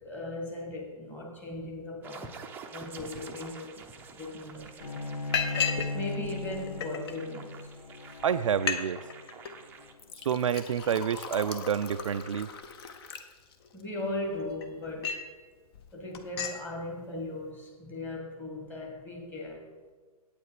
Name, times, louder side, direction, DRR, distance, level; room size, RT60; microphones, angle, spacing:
voice 1, 0.0-2.4 2.7-3.7 4.1-5.3 5.9-7.7 13.7-15.2 15.9-19.7, left 2 dB, 10° left, 0 dB, 1.5 m, -38 dB
sound 1, 2.0-9.9, right 5 dB, 10° right, 0.6 m, -48 dB
Liquid, 4.2-4.3 4.6-4.8 5.3-5.9 6.2-7.1 7.8-7.9 8.2-8.3 8.5-8.8 9.1-9.5 10.0-13.8 14.3-15.3 15.7-16.6, left 6 dB, 40° left, 0.9 m, -35 dB
Bowed string instrument, 4.8-10.1, left 2 dB, 75° left, 0.7 m, -38 dB
voice 2, 8.2-9.0 10.2-12.5, right 8 dB, 55° right, 9 dB, 0.4 m, -28 dB
8.6 x 8.5 x 4.6 m, 1.4 s
figure-of-eight pair, 125°, 20 cm